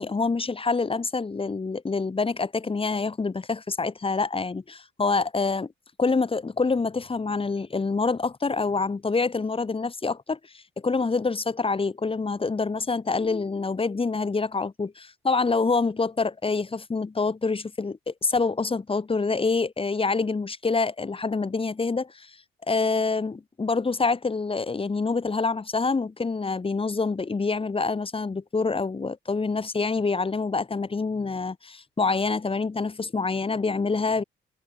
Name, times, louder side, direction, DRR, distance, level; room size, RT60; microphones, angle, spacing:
voice 1, 0.0-5.7 6.0-10.4 10.8-22.3 22.7-34.2, left 4 dB, 25° left, 4.2 m, -26 dB
cardioid pair, 90°, 20 cm